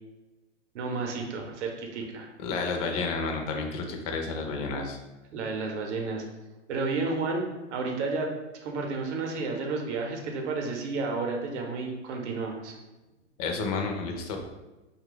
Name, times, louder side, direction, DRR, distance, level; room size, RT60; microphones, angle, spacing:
voice 1, 0.7-2.3 5.3-6.2 6.7-7.4 7.7-8.3 8.6-12.8, right 3 dB, 65° right, 2 dB, 0.7 m, -31 dB
voice 2, 2.4-5.0 13.4-14.4, left 4 dB, 35° left, 2 dB, 0.4 m, -31 dB
2.8 x 2.3 x 3.7 m, 1.1 s
hypercardioid pair, 135°, 37 cm